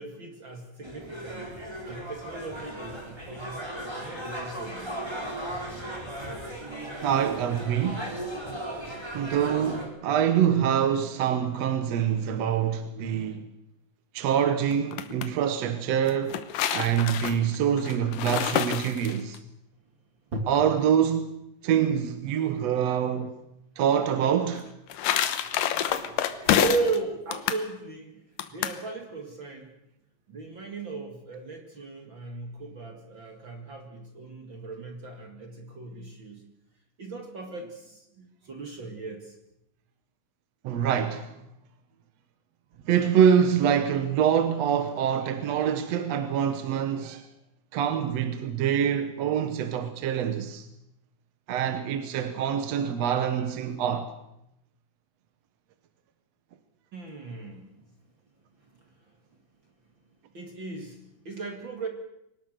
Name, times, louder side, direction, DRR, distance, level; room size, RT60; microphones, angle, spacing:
voice 1, 0.0-5.4 5.9-6.6 20.3-20.5 23.1-23.3 25.4-29.7 30.3-36.4 37.0-39.4 56.9-57.9 58.6-59.2 60.3-61.9, right 3 dB, 40° right, 2.6 m, -37 dB
sound 1, 0.8-9.9, right 1 dB, 10° right, 4.3 m, -37 dB
voice 2, 7.0-8.1 9.1-13.5 14.1-16.4 16.7-19.4 20.5-21.3 21.6-23.4 23.8-24.7 40.6-41.3 42.9-47.3 47.7-50.7 51.5-54.1, right 8 dB, 65° right, 2.0 m, -25 dB
sound 2, 14.7-15.3 16.1-19.4 24.5-27.0 27.3-27.7 28.4-28.8, left 10 dB, 80° left, 2.7 m, -28 dB
24.0 x 19.0 x 6.6 m
omnidirectional pair, 3.7 m